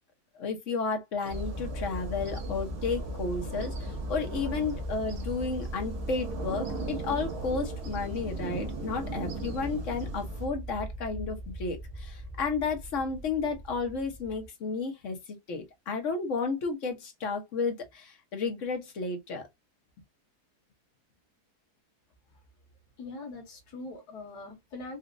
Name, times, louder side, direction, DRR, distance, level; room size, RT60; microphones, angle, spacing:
voice 1, 0.3-15.2 15.5-19.5, left 4 dB, 55° left, 1.3 m, -32 dB
sound 1, 1.2-10.5, right 3 dB, 80° right, 1.7 m, -40 dB
sound 2, 1.3-14.5, equal, 65° right, 0.4 m, -38 dB
voice 2, 23.0-25.0, left 2 dB, 80° left, 1.6 m, -42 dB
4.1 x 2.4 x 2.5 m
omnidirectional pair, 1.7 m